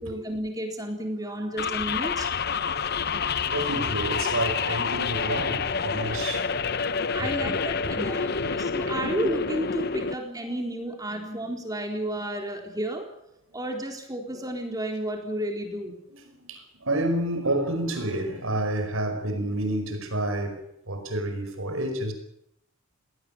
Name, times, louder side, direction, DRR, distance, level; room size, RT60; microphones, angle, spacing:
voice 1, 0.0-2.3 7.1-13.1 13.5-15.9, right 1 dB, 20° right, 4.0 m, -32 dB
sound 1, 1.6-10.1, left 5 dB, 50° left, 0.8 m, -28 dB
voice 2, 3.4-7.5 7.8-8.1 8.4-8.5 16.1-20.6 20.9-22.1, right 1 dB, 90° right, 5.1 m, -30 dB
20.0 x 18.0 x 8.8 m
head